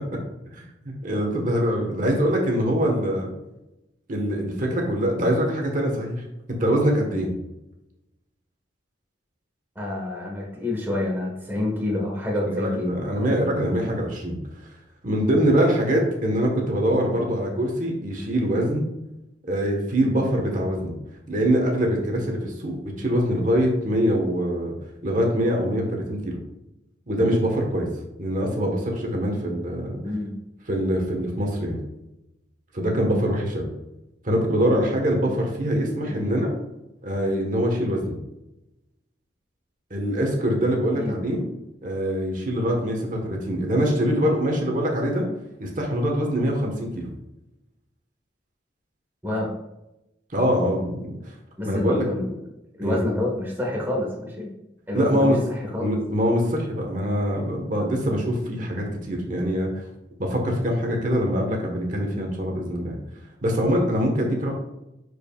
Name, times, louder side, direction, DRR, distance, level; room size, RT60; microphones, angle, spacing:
voice 1, 0.5-3.3 4.1-6.2 6.6-7.3 12.4-14.4 15.0-18.8 19.4-20.9 21.3-24.7 25.0-26.4 27.1-27.9 28.2-30.0 30.7-31.8 32.7-33.7 34.2-36.5 37.0-38.2 39.9-41.4 41.8-45.2 45.6-47.1 50.3-51.3 51.6-52.0 52.8-53.0 54.9-55.4 55.8-59.8 60.2-62.9 63.4-64.5, equal, 45° right, 1 dB, 1.3 m, -24 dB
voice 2, 9.7-12.9 29.9-30.4 36.2-36.4 41.0-41.1 49.2-49.5 51.6-52.4 52.8-54.5 54.9-55.9, left 1 dB, 10° right, -2 dB, 1.4 m, -28 dB
11.0 x 4.8 x 2.4 m, 0.91 s
head